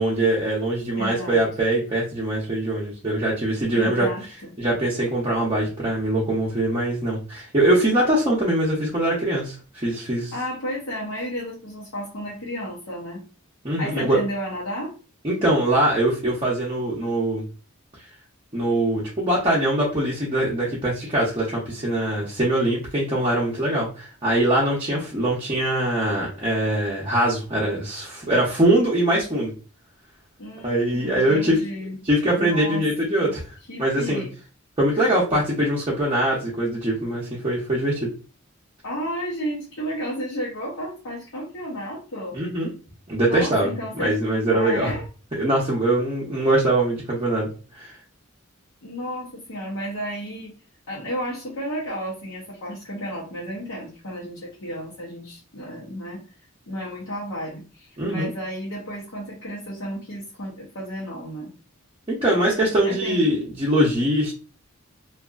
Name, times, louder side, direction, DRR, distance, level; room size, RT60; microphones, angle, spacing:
voice 1, 0.0-4.1 4.6-10.3 13.6-14.2 15.2-17.4 18.5-29.5 30.6-31.6 32.0-33.5 33.8-34.2 34.8-38.1 42.3-42.7 43.1-44.9 45.4-47.5 47.8-48.0 58.0-58.3 62.1-64.3, right 1 dB, 25° right, -6 dB, 0.7 m, -22 dB
voice 2, 1.0-1.4 3.7-4.5 10.3-13.2 13.8-14.9 30.4-32.0 32.4-32.9 33.2-33.4 33.7-34.3 35.0-35.2 38.8-42.4 43.2-44.2 44.5-45.1 48.8-50.5 50.9-56.2 56.7-61.5 62.8-63.3, equal, 70° left, -7 dB, 0.8 m, -32 dB
2.7 x 2.4 x 2.4 m, 0.35 s
head